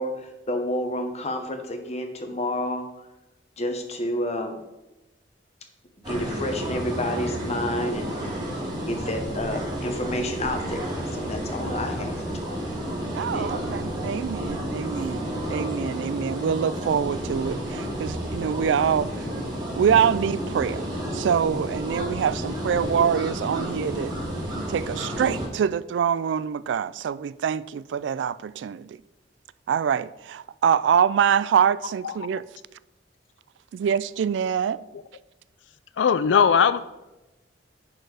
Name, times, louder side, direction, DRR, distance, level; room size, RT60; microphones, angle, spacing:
voice 1, 0.0-2.9 3.6-4.6 6.1-8.1 8.9-12.6 13.2-13.5, left 1 dB, 35° left, 1.0 m, -30 dB
sound 1, 6.0-25.5, equal, 25° right, 2.6 m, -31 dB
voice 2, 13.1-19.3 19.8-20.9 21.1-24.1 24.6-29.0 29.7-32.4 33.7-34.8, right 7 dB, 75° right, 0.3 m, -25 dB
voice 3, 36.0-36.8, left 7 dB, 80° left, 0.4 m, -19 dB
10.5 x 4.5 x 4.8 m
head